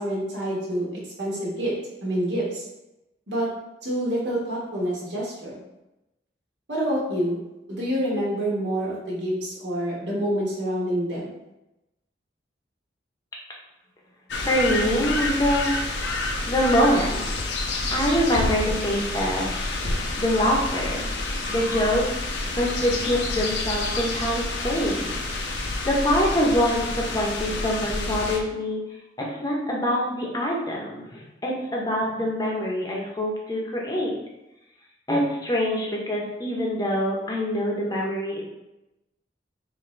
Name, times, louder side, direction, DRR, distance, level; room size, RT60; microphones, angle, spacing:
voice 1, 0.0-1.7 2.0-2.6 3.3-3.5 3.8-5.6 6.7-7.4 7.7-11.3, right 1 dB, 75° right, -5 dB, 1.2 m, -27 dB
sound 1, 14.3-28.4, left 2 dB, 75° left, 0.6 m, -28 dB
voice 2, 14.4-15.7 16.5-19.5 20.2-21.0 21.5-22.0 22.6-25.1 25.8-28.8 29.2-34.1 35.1-38.4, equal, 20° left, -2 dB, 0.7 m, -25 dB
3.9 x 2.6 x 3.2 m, 0.95 s
head